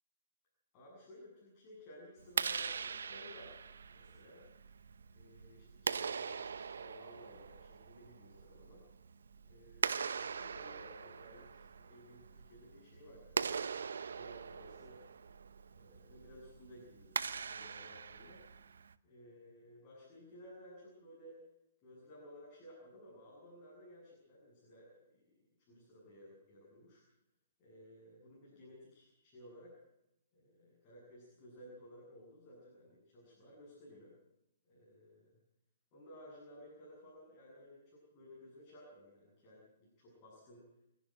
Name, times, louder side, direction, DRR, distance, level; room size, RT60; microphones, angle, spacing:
voice 1, 0.7-3.6 3.9-4.4 5.1-8.8 9.4-13.5 14.1-15.0 15.7-18.4 19.0-21.4 21.8-25.3 25.6-27.0 27.6-29.8 30.3-34.1 34.6-35.4 35.9-40.6, equal, 30° left, -4 dB, 7.8 m, -57 dB
Clapping, 2.2-18.9, right 6 dB, 90° right, 0.8 m, -41 dB
26.0 x 11.0 x 9.0 m, 0.86 s
hypercardioid pair, 150°, 0 cm